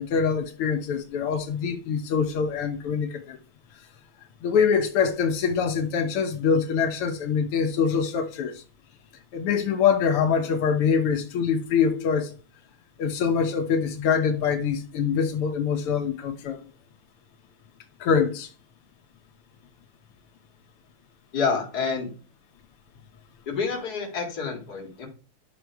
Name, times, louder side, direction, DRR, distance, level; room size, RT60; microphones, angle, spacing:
voice 1, 0.0-3.4 4.4-8.6 9.3-12.3 13.0-16.7 18.0-18.5, left 6 dB, 85° left, 1.9 m, -24 dB
voice 2, 21.3-22.1 23.5-25.1, left 5 dB, 45° left, 2.8 m, -28 dB
12.0 x 6.1 x 4.7 m
omnidirectional pair, 2.4 m